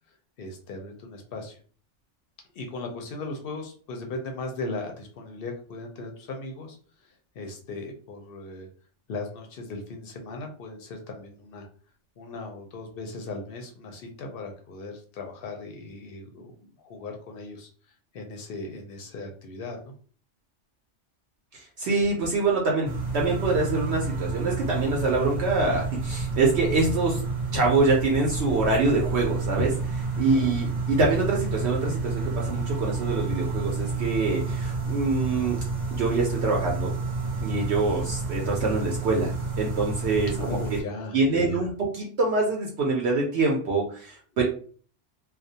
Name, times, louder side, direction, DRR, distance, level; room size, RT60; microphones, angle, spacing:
voice 1, 0.4-1.6 2.6-6.8 7.4-8.7 9.1-11.7 12.2-16.5 16.8-17.7 18.1-19.9 30.2-30.4 37.7-38.0 40.4-41.6, left 3 dB, 60° left, 3 dB, 0.6 m, -37 dB
voice 2, 21.5-27.2 27.5-35.6 35.9-37.0 37.4-39.3 39.6-40.8 41.1-44.4, right 3 dB, 70° right, -1 dB, 0.8 m, -25 dB
sound 1, 22.8-40.8, right 4 dB, 40° right, 0.3 m, -30 dB
2.3 x 2.1 x 2.7 m, 0.43 s
omnidirectional pair, 1.2 m